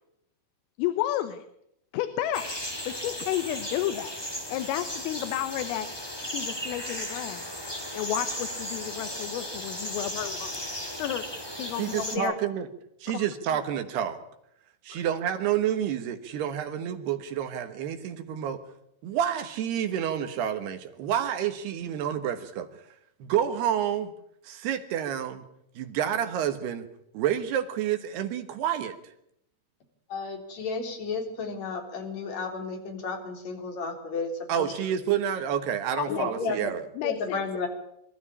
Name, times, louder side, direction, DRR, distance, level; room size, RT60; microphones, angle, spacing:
voice 1, 0.8-1.4 1.9-2.5 2.9-4.1 4.5-5.9 6.2-7.5 7.9-10.5 11.0-11.2 11.6-12.3 13.1-13.3 14.9-15.0 36.0-36.6 37.0-37.4, left 12 dB, 90° left, 10 dB, 3.7 m, -31 dB
sound 1, 2.3-12.2, equal, 10° left, 1.6 m, -36 dB
voice 2, 11.8-12.7 13.0-14.2 14.8-18.6 19.0-22.7 23.2-24.1 24.4-25.4 25.8-26.9 27.1-29.0 34.5-36.8, right 9 dB, 70° right, 9 dB, 2.9 m, -29 dB
voice 3, 30.1-34.7 36.1-36.7 37.0-37.7, left 4 dB, 40° left, 4 dB, 4.4 m, -33 dB
24.0 x 13.0 x 9.8 m, 0.77 s
omnidirectional pair, 5.7 m